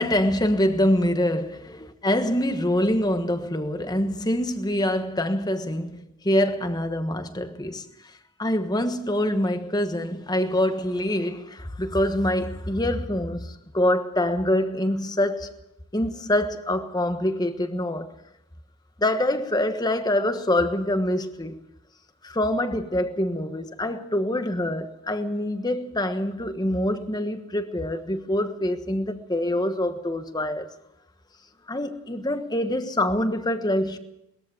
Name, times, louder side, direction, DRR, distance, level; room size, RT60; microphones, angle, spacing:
voice 1, 0.0-7.9 8.4-15.5 15.9-18.1 19.0-21.6 22.2-30.7 31.7-34.0, left 1 dB, 20° left, 1.2 m, -25 dB
20.5 x 14.0 x 9.2 m
head